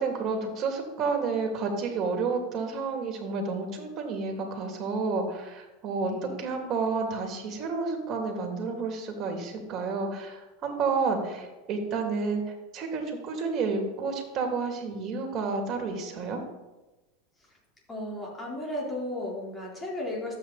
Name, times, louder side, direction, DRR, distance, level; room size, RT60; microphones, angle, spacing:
voice 1, 0.0-6.1 6.4-16.4, right 4 dB, 40° right, 2 dB, 2.8 m, -30 dB
voice 2, 6.0-6.4 17.9-20.3, left 1 dB, 20° left, -3 dB, 4.2 m, -34 dB
12.5 x 8.5 x 4.2 m, 1.1 s
supercardioid pair, 115°, 0 cm